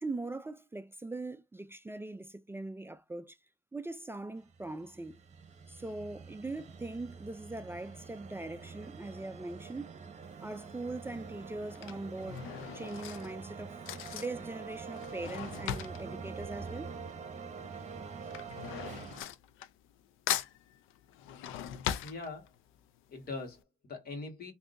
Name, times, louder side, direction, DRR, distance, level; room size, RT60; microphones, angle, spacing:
voice 1, 0.0-3.4 3.7-5.2 5.7-9.9 10.4-12.4 12.7-13.8 14.1-17.0, right 2 dB, 10° right, 0.3 m, -41 dB
sound 1, 4.5-19.2, right 5 dB, 35° right, 0.8 m, -45 dB
Drawer open or close / Cutlery silverware, 10.3-10.7 11.5-17.4 17.6-20.0 20.3-22.8 23.2-23.3 23.5-23.6, left 11 dB, 90° left, 0.4 m, -40 dB
voice 2, 22.0-22.5 23.1-24.5, left 3 dB, 50° left, 1.6 m, -42 dB
3.5 x 2.6 x 2.5 m
cardioid pair, 90°, 20 cm